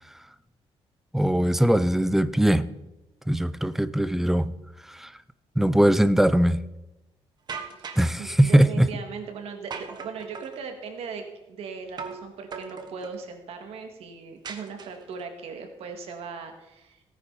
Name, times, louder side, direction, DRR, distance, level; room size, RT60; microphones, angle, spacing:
voice 1, 1.1-2.7 3.3-4.5 5.0-5.1 5.6-6.6 8.0-8.9, right 1 dB, 5° right, 0.5 m, -20 dB
sound 1, 7.5-8.1 9.7-10.6 12.0-12.3 12.5-13.2 14.4-15.2, right 5 dB, 45° right, 1.3 m, -38 dB
voice 2, 7.8-17.0, right 5 dB, 75° right, 2.1 m, -38 dB
17.0 x 9.9 x 4.1 m
cardioid pair, 145°, 10 cm